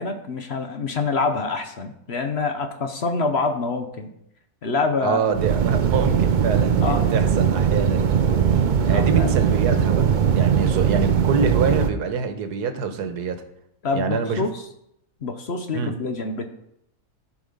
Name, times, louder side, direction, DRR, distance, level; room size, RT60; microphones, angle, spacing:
voice 1, 0.0-4.1 4.6-5.2 6.8-7.0 8.9-9.3 13.8-14.6 15.2-16.5, left 3 dB, 50° left, 6 dB, 1.0 m, -26 dB
voice 2, 5.0-8.1 8.9-13.4 13.9-14.5 15.7-15.9, right 5 dB, 85° right, 8 dB, 1.5 m, -25 dB
sound 1, 5.3-11.9, right 7 dB, 65° right, 0.4 m, -20 dB
13.5 x 5.1 x 5.3 m, 0.78 s
omnidirectional pair, 1.7 m